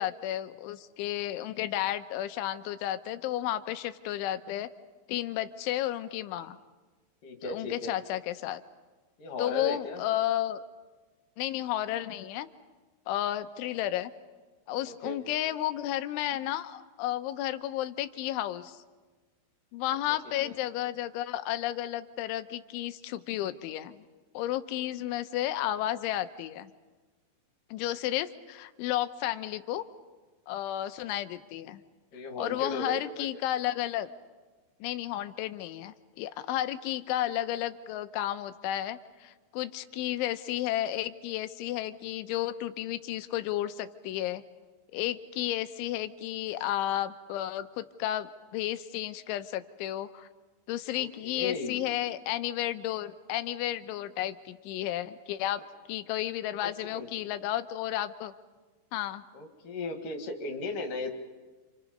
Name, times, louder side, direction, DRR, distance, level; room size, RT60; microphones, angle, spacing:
voice 1, 0.0-4.7 5.1-6.6 7.4-8.6 9.4-10.6 11.4-12.5 13.1-14.1 14.7-18.8 19.7-24.0 24.3-26.7 27.7-29.8 30.5-31.8 32.4-34.1 34.8-44.4 44.9-50.3 50.7-55.6 55.9-58.3 58.9-59.2, left 13 dB, 90° left, 10 dB, 3.3 m, -32 dB
voice 2, 7.2-7.9 9.2-10.0 14.9-15.4 20.4-20.5 32.1-33.4 50.9-51.8 56.6-57.1 59.3-61.2, left 2 dB, 55° left, 4 dB, 3.2 m, -37 dB
29.0 x 28.5 x 5.3 m, 1.3 s
omnidirectional pair, 5.3 m